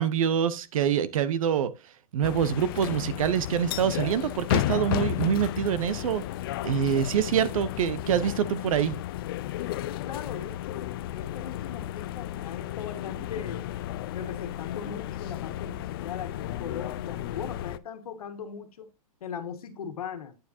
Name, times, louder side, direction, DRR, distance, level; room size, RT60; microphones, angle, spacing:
voice 1, 0.0-1.7 2.1-6.2 6.6-9.0, right 9 dB, 65° right, 0.8 m, -25 dB
sound 1, 2.2-17.8, left 13 dB, 40° left, 0.4 m, -33 dB
voice 2, 9.8-13.7 14.1-18.9 19.2-20.4, left 7 dB, 80° left, 1.7 m, -39 dB
9.0 x 7.2 x 2.8 m
hypercardioid pair, 155°, 19 cm